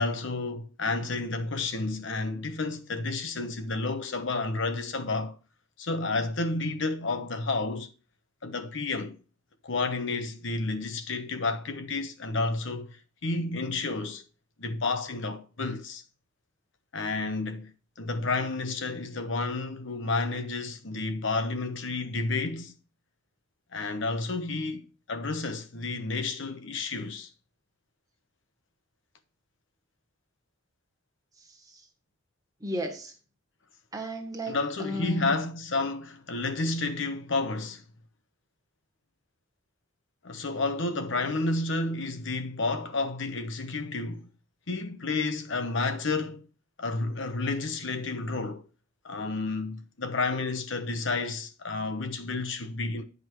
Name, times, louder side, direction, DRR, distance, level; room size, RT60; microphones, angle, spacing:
voice 1, 0.0-5.3 5.8-7.9 8.4-9.2 9.6-13.0 13.2-14.2 14.6-16.0 16.9-17.7 18.0-22.7 23.7-27.3 34.5-37.8 40.2-44.3 44.7-46.5 46.8-48.6 49.0-53.0, left 3 dB, 65° left, 1.0 m, -31 dB
voice 2, 31.4-31.9 32.6-33.1 33.9-35.3, equal, 20° right, 1.6 m, -35 dB
9.5 x 5.4 x 4.6 m
head